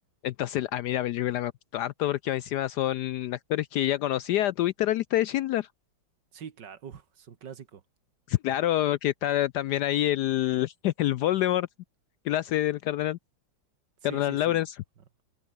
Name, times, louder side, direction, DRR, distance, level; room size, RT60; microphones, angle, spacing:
voice 1, 0.2-5.7 8.3-11.7 12.2-13.2 14.0-14.7, left 13 dB, 75° left, 1.0 m, -27 dB
voice 2, 6.3-7.8 14.0-14.6, right 7 dB, 65° right, 2.1 m, -44 dB
omnidirectional pair, 2.1 m